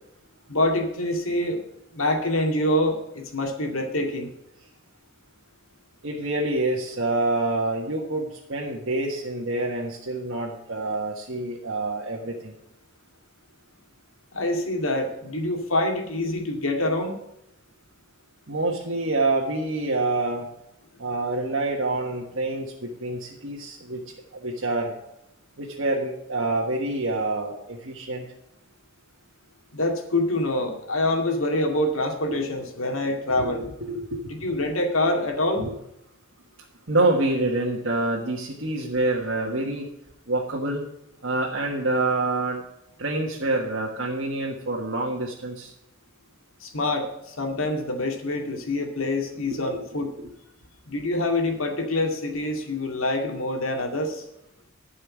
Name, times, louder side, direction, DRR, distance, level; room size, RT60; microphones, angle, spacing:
voice 1, 0.5-1.6 1.9-4.3 14.3-17.1 29.7-33.6 34.2-35.7 46.6-50.1 50.9-54.2, left 1 dB, 80° left, 3 dB, 2.2 m, -26 dB
voice 2, 6.0-12.5 18.5-20.5 21.0-24.0 24.3-25.0 25.6-28.3 32.3-32.4 33.3-34.3 35.6-35.7 36.9-39.9 40.3-40.9 41.2-42.6 43.0-45.7 49.7-49.8 50.2-50.3, right 2 dB, 65° right, -3 dB, 1.6 m, -27 dB
12.5 x 5.6 x 8.6 m, 0.82 s
head